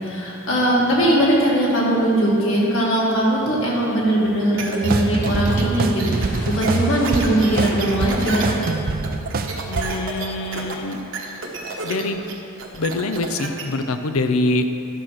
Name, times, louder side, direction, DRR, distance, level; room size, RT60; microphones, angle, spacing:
voice 1, 0.0-8.5, right 1 dB, 65° left, -5 dB, 2.4 m, -20 dB
sound 1, 4.6-13.6, right 3 dB, 65° right, 1.2 m, -31 dB
sound 2, 4.8-9.8, right 3 dB, 45° right, 0.5 m, -25 dB
sound 3, 6.1-10.1, left 1 dB, 40° left, 1.2 m, -38 dB
voice 2, 9.7-11.0 11.8-12.2 12.7-14.6, left 2 dB, 90° left, 8 dB, 0.6 m, -24 dB
11.5 x 6.3 x 5.9 m, 3.0 s
head